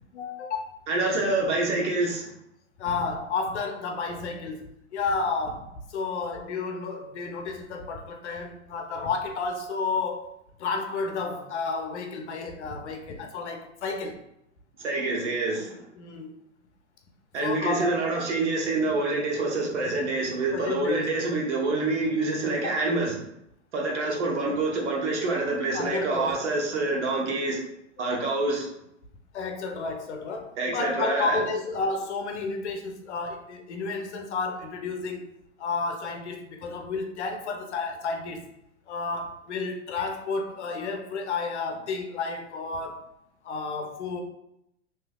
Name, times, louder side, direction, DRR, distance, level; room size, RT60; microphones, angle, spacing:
voice 1, 0.1-0.8 2.8-10.3 10.6-14.2 15.9-16.3 17.4-18.0 20.5-21.1 22.6-22.8 25.7-26.4 28.0-28.2 29.3-35.3 35.6-38.5 38.9-43.1 43.4-44.2, left 4 dB, 65° left, 4 dB, 0.7 m, -31 dB
voice 2, 0.9-2.2 14.8-15.7 17.3-23.1 23.7-27.6 28.0-28.7 30.6-31.4, right 2 dB, 65° right, -2 dB, 1.2 m, -26 dB
3.2 x 3.0 x 2.3 m, 0.78 s
hypercardioid pair, 110°, 37 cm